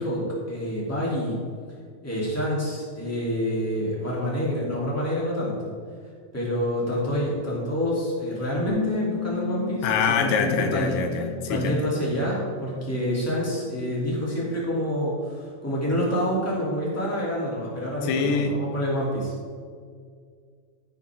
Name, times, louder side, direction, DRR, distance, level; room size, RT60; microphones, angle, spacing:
voice 1, 0.0-1.4 2.0-5.7 6.3-11.0 11.5-19.3, equal, 5° left, -6 dB, 2.3 m, -27 dB
Bass guitar, 8.7-14.9, left 12 dB, 70° left, 2.2 m, -36 dB
voice 2, 9.8-11.9 18.0-18.6, left 5 dB, 85° left, 5 dB, 2.5 m, -25 dB
15.5 x 7.1 x 3.6 m, 2.1 s
omnidirectional pair, 4.0 m